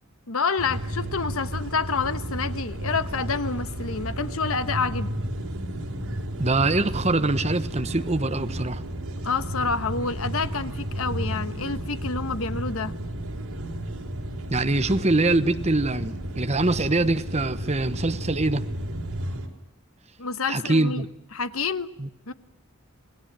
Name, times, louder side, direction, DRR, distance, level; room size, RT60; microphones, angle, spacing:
voice 1, 0.3-5.2 9.2-12.9 20.2-21.1 21.3-21.9 22.3-22.4, left 4 dB, 75° left, 12 dB, 1.2 m, -28 dB
sound 1, 0.6-19.5, right 1 dB, 90° right, 4.4 m, -32 dB
voice 2, 6.4-8.8 14.5-18.6 20.5-21.1 22.0-22.1, right 2 dB, 30° right, 9 dB, 1.1 m, -24 dB
27.5 x 18.5 x 7.5 m, 0.82 s
head